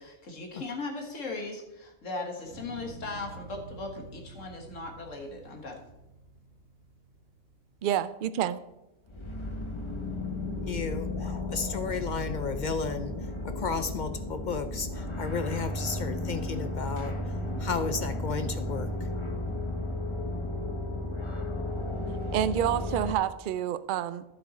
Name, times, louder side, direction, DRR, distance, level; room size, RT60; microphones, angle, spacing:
voice 1, 0.0-5.8, left 3 dB, 85° left, 2 dB, 2.0 m, -38 dB
sound 1, 2.4-8.8 9.2-9.8, right 2 dB, 80° right, 2.4 m, -49 dB
voice 2, 7.8-8.6 22.3-24.2, right 10 dB, 60° right, 14 dB, 0.5 m, -28 dB
sound 2, 9.1-23.1, left 1 dB, 25° left, 1.1 m, -34 dB
voice 3, 10.6-13.1 13.4-17.1 17.6-18.9, left 5 dB, 55° left, 10 dB, 0.5 m, -33 dB
12.0 x 7.6 x 4.2 m, 0.95 s
omnidirectional pair, 1.3 m